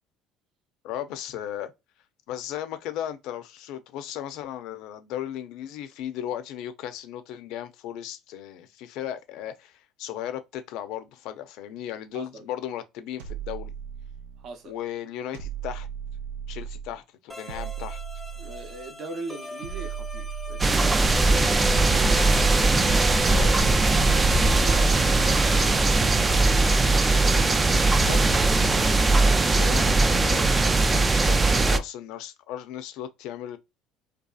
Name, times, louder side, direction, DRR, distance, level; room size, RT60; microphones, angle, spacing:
voice 1, 0.8-1.7 2.3-13.7 14.7-15.9 16.5-18.0 21.2-21.3 23.3-23.8 27.8-33.6, left 11 dB, 70° left, 0.5 m, -36 dB
voice 2, 12.1-12.4 14.4-14.7 18.4-23.7 24.1-26.6, right 3 dB, 55° right, 0.7 m, -40 dB
sound 1, 13.2-14.5 15.3-17.0 17.5-18.9 19.6-21.2 21.8-23.2 23.9-25.5, right 8 dB, 85° right, 0.4 m, -36 dB
sound 2, 17.3-25.3, left 1 dB, ahead, 0.7 m, -37 dB
sound 3, 20.6-31.8, right 3 dB, 20° right, 0.3 m, -20 dB
2.7 x 2.3 x 2.3 m
supercardioid pair, 85°, 0 cm